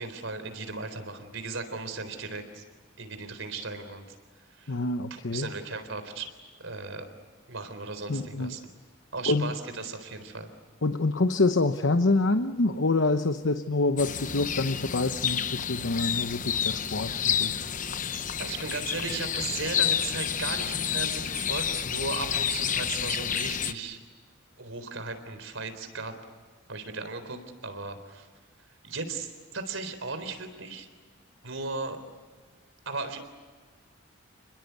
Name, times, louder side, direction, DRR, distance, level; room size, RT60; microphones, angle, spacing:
voice 1, 0.0-2.6 3.0-4.1 4.5-4.8 5.1-6.3 6.6-7.1 7.5-8.6 9.1-10.5 16.6-16.7 18.4-24.0 24.6-26.1 26.7-28.3 28.8-30.9 31.4-32.0 32.9-33.2, right 3 dB, 80° right, 9 dB, 3.9 m, -36 dB
voice 2, 4.7-5.5 8.1-8.6 9.3-9.6 10.8-17.6, left 2 dB, 70° left, 9 dB, 0.9 m, -26 dB
sound 1, 14.0-23.7, left 8 dB, 40° left, 0.8 m, -30 dB
30.0 x 21.0 x 8.3 m, 1.5 s
head